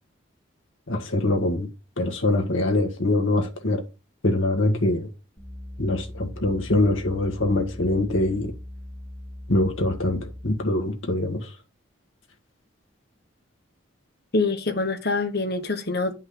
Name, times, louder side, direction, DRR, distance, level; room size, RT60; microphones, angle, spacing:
voice 1, 0.9-1.7 2.0-3.8 4.2-5.1 5.8-8.5 9.5-11.5, left 2 dB, 85° left, 1.8 m, -23 dB
sound 1, 5.4-10.7, left 1 dB, 20° left, 3.7 m, -40 dB
voice 2, 14.3-16.1, left 3 dB, 55° left, 1.4 m, -25 dB
10.0 x 5.3 x 3.8 m
head